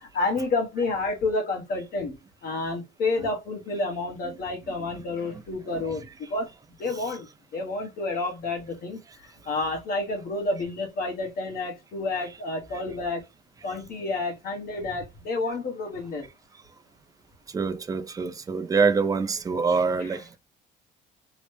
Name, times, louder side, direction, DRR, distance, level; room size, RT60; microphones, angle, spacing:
voice 1, 0.0-2.2 2.4-6.5 6.8-7.3 7.5-13.2 13.6-16.3, left 3 dB, 60° left, 1.2 m, -30 dB
voice 2, 5.7-6.1 6.9-7.2 12.7-12.8 13.6-13.7 17.5-20.4, right 4 dB, 20° right, 0.4 m, -26 dB
3.1 x 2.0 x 3.1 m
cardioid pair, 110°, 17 cm